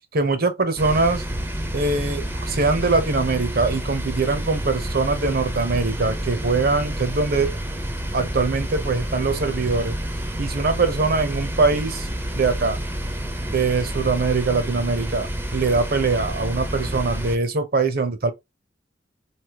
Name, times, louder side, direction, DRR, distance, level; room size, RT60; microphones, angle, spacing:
voice 1, 0.1-1.2 1.7-7.5 8.1-9.9 10.4-12.1 12.3-12.8 13.5-18.3, right 3 dB, 55° right, 0.8 m, -22 dB
sound 1, 0.8-17.4, right 1 dB, 10° right, 0.6 m, -29 dB
3.3 x 2.7 x 2.8 m
head